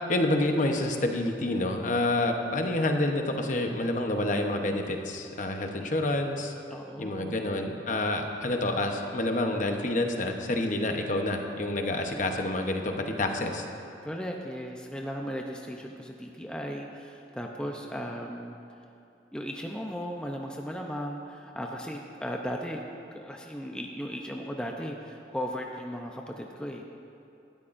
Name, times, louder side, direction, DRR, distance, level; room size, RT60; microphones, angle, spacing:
voice 1, 0.1-6.5 7.0-13.7, left 1 dB, 45° left, 4 dB, 0.9 m, -28 dB
voice 2, 6.7-7.4 11.9-12.4 14.0-18.6 19.3-22.8 23.1-26.8, equal, 5° left, 1 dB, 0.6 m, -36 dB
18.5 x 12.5 x 2.6 m, 2.6 s
head